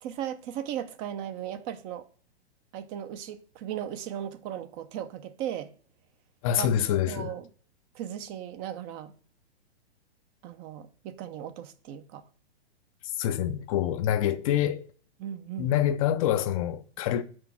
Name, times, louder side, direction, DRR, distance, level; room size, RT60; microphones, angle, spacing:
voice 1, 0.0-2.1 2.7-5.7 6.6-7.5 7.9-9.1 10.4-12.2 15.2-15.8, right 10 dB, 25° right, 0.5 m, -37 dB
voice 2, 6.4-7.3 13.2-14.9 15.6-17.2, left 10 dB, 35° left, 0.5 m, -26 dB
6.2 x 4.7 x 5.9 m
hypercardioid pair, 130°, 33 cm